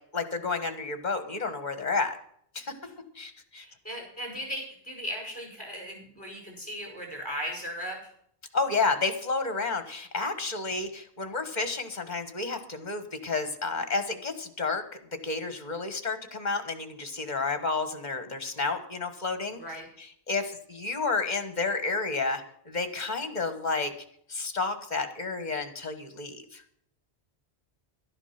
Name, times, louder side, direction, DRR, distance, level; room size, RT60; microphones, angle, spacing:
voice 1, 0.1-2.2 2.5-2.7 3.1-3.6 8.5-14.8 15.2-19.6 20.0-23.9 24.3-26.6, left 3 dB, 40° left, 9 dB, 1.5 m, -31 dB
voice 2, 3.6-8.1 19.6-19.9, equal, 20° left, 0 dB, 5.4 m, -37 dB
12.0 x 11.0 x 5.8 m, 0.66 s
omnidirectional pair, 1.1 m